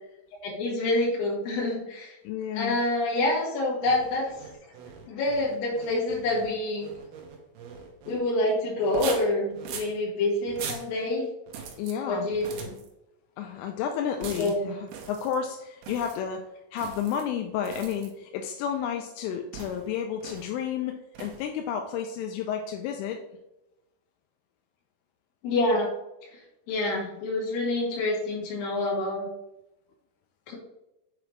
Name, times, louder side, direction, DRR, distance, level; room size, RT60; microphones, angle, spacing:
voice 1, 0.4-2.2 2.6-4.7 5.1-6.9 8.1-11.3 12.1-12.7 14.4-14.7 25.4-25.9 26.3-26.4 26.7-29.3 30.5-30.6, left 2 dB, 65° left, -3 dB, 3.5 m, -27 dB
voice 2, 2.2-2.8 11.8-12.3 13.4-23.2, left 8 dB, 85° left, 3 dB, 3.1 m, -31 dB
sound 1, 3.8-8.2 8.8-9.9 10.5-10.9 11.5-11.9 12.3-12.9 14.2-14.6 14.9-15.4 15.8-16.2 16.8-17.2 17.6-18.1 19.5-19.9 20.2-20.5 21.1-21.5, right 6 dB, 80° right, 2.3 m, -41 dB
7.8 x 4.8 x 3.2 m, 0.90 s
omnidirectional pair, 5.6 m